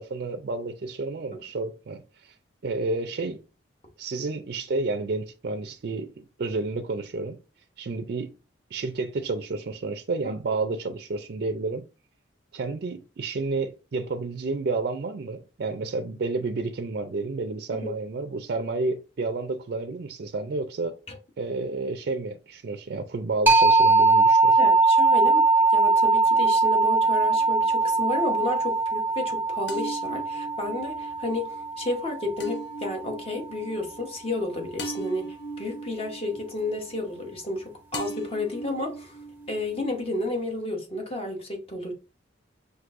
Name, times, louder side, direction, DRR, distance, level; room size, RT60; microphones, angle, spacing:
voice 1, 0.0-2.3 2.6-3.4 4.0-7.4 7.8-8.3 8.7-11.8 12.5-20.9 21.4-24.6, right 3 dB, 55° right, 0.4 m, -30 dB
sound 1, 23.5-32.8, right 3 dB, 10° right, 0.6 m, -21 dB
voice 2, 24.6-25.4 25.7-39.2 39.5-41.9, left 2 dB, 30° left, 1.0 m, -31 dB
sound 2, 27.2-28.1 29.7-37.6 37.9-40.0, right 2 dB, 60° left, 0.6 m, -40 dB
6.0 x 2.6 x 2.5 m
head